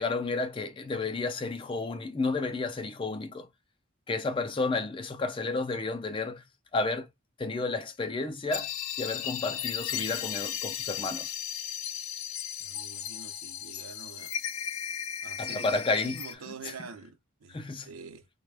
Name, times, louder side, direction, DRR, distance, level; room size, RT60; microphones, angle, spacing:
voice 1, 0.0-3.5 4.1-6.4 6.7-7.1 7.4-8.7 9.0-11.3 15.4-16.2 16.5-16.7 17.5-17.9, left 3 dB, 25° left, 0.4 m, -31 dB
sound 1, 8.5-16.3, left 9 dB, 80° left, 0.5 m, -36 dB
voice 2, 12.6-14.3 15.2-15.7 16.0-17.6 17.8-18.3, right 5 dB, 85° right, 0.6 m, -46 dB
4.0 x 2.2 x 3.3 m
head